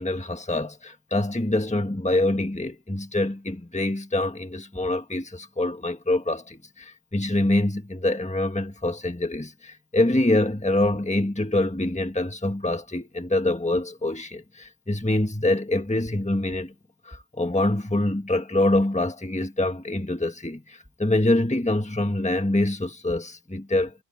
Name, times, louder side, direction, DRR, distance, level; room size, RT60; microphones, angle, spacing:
voice 1, 0.0-16.7 17.0-23.9, left 1 dB, 5° left, 1.5 m, -25 dB
omnidirectional pair, 1.1 m